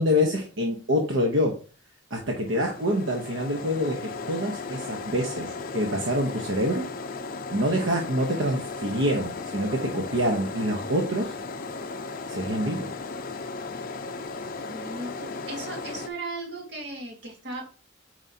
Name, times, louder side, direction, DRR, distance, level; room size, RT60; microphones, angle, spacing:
voice 1, 0.0-1.5 2.1-6.9 7.5-11.3 12.3-12.9, equal, 80° right, 1 dB, 1.0 m, -26 dB
sound 1, 2.4-16.1, left 3 dB, 45° left, 0.5 m, -36 dB
voice 2, 14.7-17.7, right 2 dB, 55° right, 1 dB, 1.9 m, -36 dB
7.6 x 4.8 x 2.8 m, 0.36 s
head